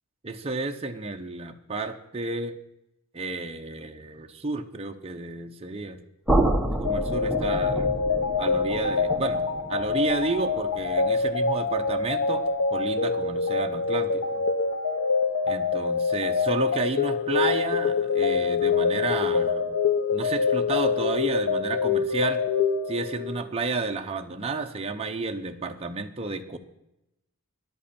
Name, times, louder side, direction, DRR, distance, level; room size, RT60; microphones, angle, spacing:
voice 1, 0.2-2.6 3.1-6.0 6.7-7.9 8.4-12.4 12.7-14.5 15.5-19.8 20.1-22.4 22.9-26.6, right 3 dB, 25° right, 3 dB, 0.7 m, -31 dB
sound 1, 6.3-12.2, right 1 dB, ahead, 1.0 m, -29 dB
sound 2, 6.9-23.5, left 5 dB, 70° left, 1.0 m, -25 dB
14.0 x 10.5 x 4.3 m, 0.86 s
head